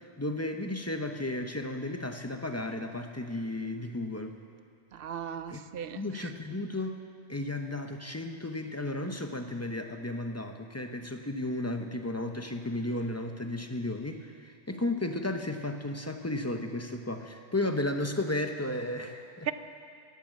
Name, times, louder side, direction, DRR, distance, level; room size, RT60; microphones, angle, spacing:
voice 1, 0.0-4.4 5.5-5.6 6.0-6.9 7.3-19.5, left 1 dB, 15° left, 5 dB, 0.7 m, -34 dB
voice 2, 4.9-6.3 19.5-19.6, right 8 dB, 55° right, 11 dB, 0.8 m, -37 dB
18.5 x 8.4 x 7.4 m, 2.4 s
omnidirectional pair, 1.3 m